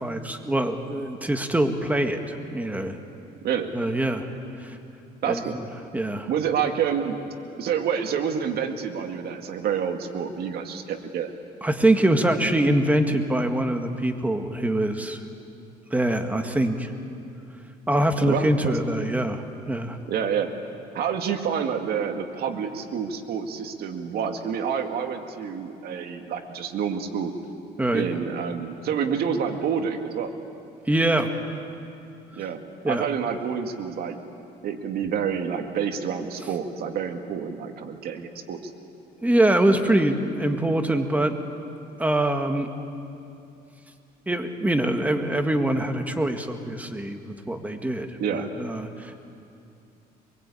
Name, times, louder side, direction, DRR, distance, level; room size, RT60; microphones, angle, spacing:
voice 1, 0.0-3.0 3.7-4.3 4.6-4.8 5.2-5.4 5.9-6.3 11.6-15.2 15.9-16.9 17.9-20.0 27.8-28.1 30.9-31.3 32.8-33.0 39.2-41.3 42.0-42.7 44.3-49.2, right 1 dB, 10° right, 5 dB, 1.8 m, -24 dB
voice 2, 5.2-5.6 6.3-7.2 7.6-11.3 18.2-18.8 20.1-20.5 20.9-27.3 27.9-30.3 32.4-34.2 34.6-38.6 48.2-48.5, right 7 dB, 65° right, 5 dB, 2.1 m, -28 dB
24.0 x 22.5 x 8.5 m, 2.7 s
cardioid pair, 110°, 17 cm